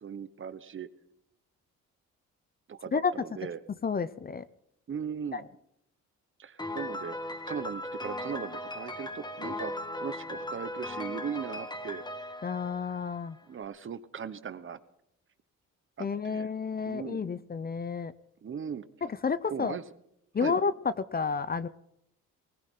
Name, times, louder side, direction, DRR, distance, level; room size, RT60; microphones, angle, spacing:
voice 1, 0.0-0.9 2.7-3.6 4.9-5.4 6.4-7.1 7.4-12.0 13.5-14.8 16.0-16.5 16.9-17.2 18.4-18.9 19.5-19.8 20.4-20.6, right 7 dB, 40° right, 13 dB, 1.2 m, -38 dB
voice 2, 3.8-4.4 5.3-5.4 12.4-13.4 16.0-18.1 19.0-19.8 20.3-21.7, left 5 dB, 30° left, 16 dB, 0.7 m, -30 dB
Piano, 6.6-13.4, left 1 dB, 15° left, 1.6 m, -38 dB
19.5 x 19.0 x 3.8 m, 0.78 s
cardioid pair, 90°, 30 cm